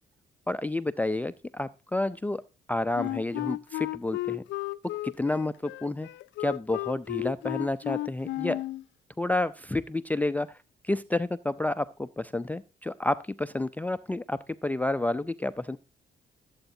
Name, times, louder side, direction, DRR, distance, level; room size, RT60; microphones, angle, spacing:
voice 1, 0.5-2.4 2.7-4.4 5.0-6.1 6.4-8.6 9.2-10.5 10.8-15.8, left 2 dB, 10° left, 15 dB, 0.4 m, -30 dB
Wind instrument woodwind instrument, 2.9-8.8, left 17 dB, 80° left, 0.4 m, -34 dB
15.5 x 8.0 x 2.7 m, 0.30 s
cardioid pair, 100°, 18 cm